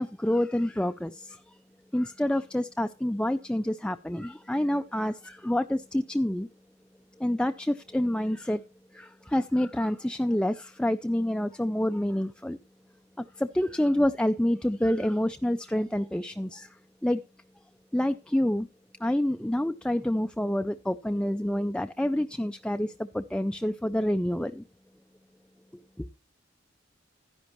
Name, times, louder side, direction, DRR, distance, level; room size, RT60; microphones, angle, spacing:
voice 1, 0.0-1.6 1.9-6.5 7.2-8.6 8.9-12.6 13.2-17.2 17.9-18.7 19.0-24.6 26.0-26.1, left 1 dB, 5° left, 0.4 m, -28 dB
12.5 x 10.5 x 3.1 m
head